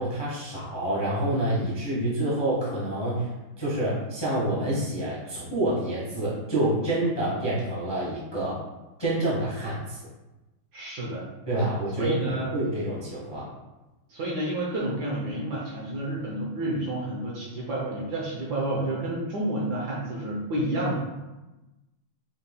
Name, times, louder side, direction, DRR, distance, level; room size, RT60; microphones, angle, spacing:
voice 1, 0.0-3.3 3.6-8.6 9.0-10.0 11.5-13.5, right 1 dB, 25° left, -7 dB, 0.5 m, -27 dB
voice 2, 10.7-11.2 12.0-12.5 14.1-21.0, right 1 dB, 65° right, -3 dB, 1.2 m, -30 dB
5.4 x 3.5 x 2.2 m, 1.0 s
omnidirectional pair, 2.4 m